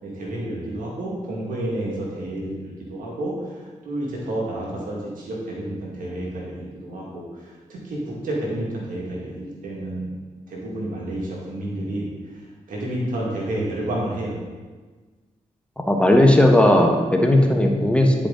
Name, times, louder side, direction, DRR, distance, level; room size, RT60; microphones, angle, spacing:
voice 1, 0.0-3.3 3.8-7.2 7.7-10.1 10.5-12.1 12.7-14.4, right 1 dB, 90° right, -4 dB, 1.9 m, -30 dB
voice 2, 15.9-18.1, left 1 dB, 10° left, 2 dB, 1.1 m, -16 dB
10.0 x 4.8 x 3.8 m, 1.4 s
cardioid pair, 55°, 14 cm